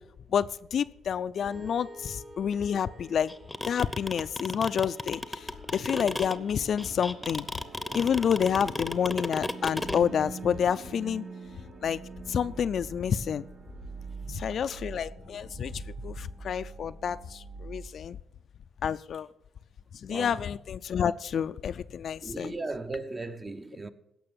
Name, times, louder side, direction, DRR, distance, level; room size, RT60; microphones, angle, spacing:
voice 1, 0.3-3.3 3.6-7.5 7.9-11.3 11.8-12.0 12.3-13.4 14.3-18.2 18.8-19.3 20.0-22.5, left 8 dB, 60° left, 0.4 m, -29 dB
sound 1, 1.3-17.9, right 3 dB, 45° right, 4.2 m, -45 dB
sound 2, 3.3-10.0, left 2 dB, 15° left, 0.8 m, -33 dB
voice 2, 20.1-20.4 22.2-23.9, right 3 dB, 25° right, 0.8 m, -37 dB
16.5 x 6.0 x 7.2 m
cardioid pair, 90°, 0 cm